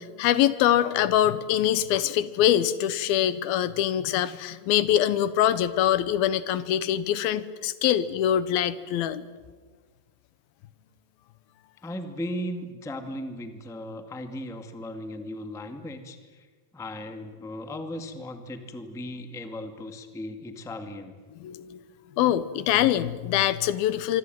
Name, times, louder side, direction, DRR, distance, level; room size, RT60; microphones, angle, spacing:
voice 1, 0.0-9.2 21.4-21.8 22.2-24.2, left 11 dB, 85° left, 15 dB, 2.9 m, -24 dB
voice 2, 11.8-16.5 16.7-21.1, left 1 dB, ahead, 7 dB, 1.0 m, -37 dB
25.5 x 24.5 x 9.3 m, 1.5 s
omnidirectional pair, 4.2 m